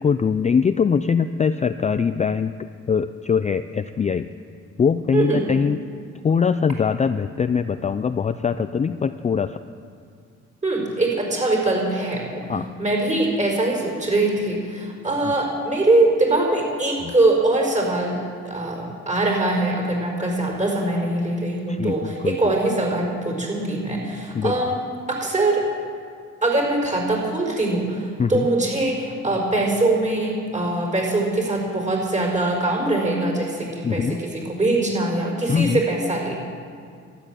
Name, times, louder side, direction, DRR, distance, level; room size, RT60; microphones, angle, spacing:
voice 1, 0.0-2.5 2.9-4.3 4.8-5.8 6.2-9.6 12.5-12.7 15.2-15.3 17.0-17.1 21.7-22.4 24.3-24.5 28.2-28.5 33.8-34.2 35.5-35.9, left 6 dB, 25° left, 11 dB, 0.4 m, -22 dB
voice 2, 5.1-5.5 10.6-12.5 12.8-24.8 25.1-25.6 26.4-36.3, right 2 dB, 25° right, 0 dB, 5.0 m, -22 dB
13.0 x 11.5 x 8.4 m, 2.2 s
cardioid pair, 90°, 30 cm